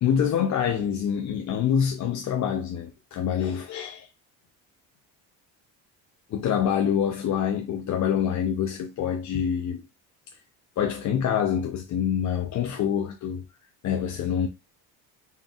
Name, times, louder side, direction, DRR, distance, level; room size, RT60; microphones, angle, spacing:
voice 1, 0.0-4.1 6.3-9.8 10.8-13.4 13.8-14.5, left 8 dB, 45° left, 0.7 m, -26 dB
4.4 x 3.5 x 2.4 m
cardioid pair, 95°, 38 cm